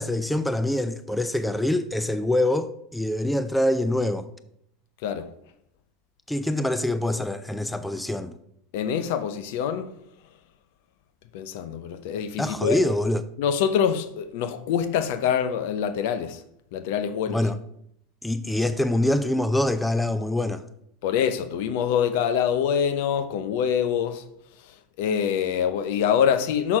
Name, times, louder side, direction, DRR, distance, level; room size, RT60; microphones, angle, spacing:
voice 1, 0.0-4.3 6.3-8.3 12.4-13.2 17.3-17.6 18.2-20.6, left 1 dB, 5° left, 0.5 m, -25 dB
voice 2, 8.7-9.9 11.3-12.8 13.4-16.4 16.7-17.4 21.0-24.2 25.0-26.8, left 8 dB, 65° left, 0.7 m, -25 dB
6.1 x 5.9 x 4.9 m
hypercardioid pair, 85°, 0 cm